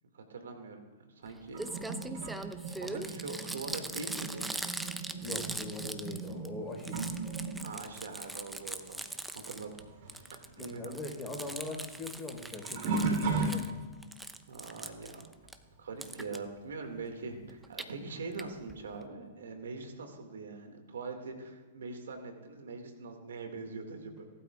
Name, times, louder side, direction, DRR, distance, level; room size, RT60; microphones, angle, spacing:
voice 1, 0.1-0.8 1.2-1.7 2.2-2.3 2.7-4.5 7.6-9.7 10.0-11.0 14.5-15.3 15.8-24.3, right 4 dB, 75° right, 4 dB, 2.1 m, -43 dB
Crumpling crinkling, 1.3-1.4 1.6-6.5 6.7-9.8 10.1-13.7 14.0-15.6 16.0-16.4 17.5-17.9 18.4-18.5 18.7-18.8 19.0-19.1, right 2 dB, 5° right, 0.7 m, -41 dB
sound 1, 1.5-9.5 9.8-14.1 14.7-15.1 17.3-17.4 18.3-18.4, right 3 dB, 55° right, 3.4 m, -38 dB
voice 2, 5.2-7.0 10.6-13.7, left 2 dB, 20° left, 1 dB, 4.1 m, -41 dB
18.5 x 12.5 x 2.4 m, 1.3 s
hypercardioid pair, 115°, 0 cm